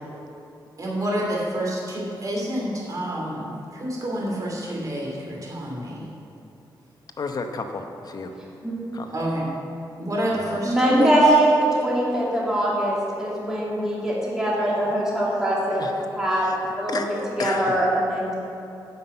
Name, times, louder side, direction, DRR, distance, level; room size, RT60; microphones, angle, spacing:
voice 1, 0.8-6.1 9.1-9.5 10.0-11.3, equal, 45° right, -4 dB, 2.6 m, -28 dB
voice 2, 7.2-8.3 8.9-9.1 10.3-10.6 15.8-16.1 16.4-17.8, left 4 dB, 50° left, 5 dB, 0.8 m, -33 dB
voice 3, 10.7-15.8 16.1-16.5 16.8-17.0 17.4-18.3, right 1 dB, 5° right, -6 dB, 2.3 m, -22 dB
9.8 x 5.6 x 7.9 m, 2.7 s
wide cardioid pair, 130°, 8 cm